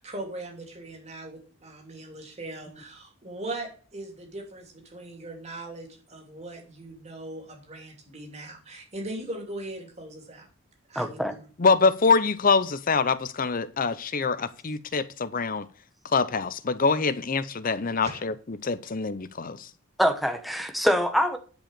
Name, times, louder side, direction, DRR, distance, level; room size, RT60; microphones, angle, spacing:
voice 1, 0.0-10.5 10.9-11.4 18.1-18.2, right 2 dB, 35° right, 2.9 m, -39 dB
voice 2, 10.9-11.3 20.0-21.4, equal, ahead, 1.1 m, -24 dB
voice 3, 11.6-15.7 16.1-19.7, left 4 dB, 45° left, 0.7 m, -25 dB
10.5 x 4.9 x 6.6 m
head